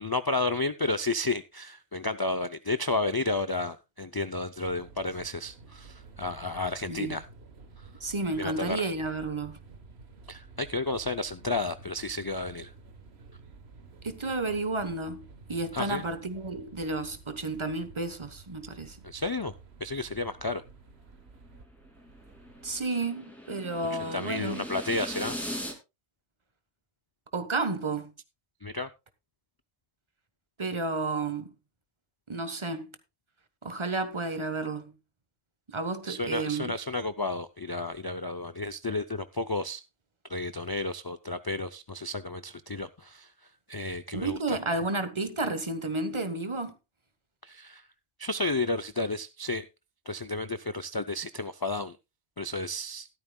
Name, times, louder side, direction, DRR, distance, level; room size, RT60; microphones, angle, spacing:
voice 1, 0.0-7.2 7.8-7.9 8.4-8.8 10.3-12.7 15.7-16.0 19.0-19.5 19.8-20.6 23.9-25.4 28.6-28.9 36.1-39.8 40.3-44.6 47.4-47.9 48.2-49.7 50.1-52.0 52.4-53.1, left 2 dB, 35° left, 0.3 m, -32 dB
sound 1, 4.6-22.8, right 4 dB, 65° right, 1.4 m, -52 dB
voice 2, 8.0-9.6 14.0-15.2 15.5-19.0 22.6-24.7 27.3-28.1 30.6-31.5 32.3-32.9 33.6-34.9 35.7-36.7 44.1-46.7, right 3 dB, 25° right, 1.1 m, -31 dB
sound 2, 21.4-25.7, equal, ahead, 2.6 m, -39 dB
14.5 x 12.5 x 2.3 m
omnidirectional pair, 1.1 m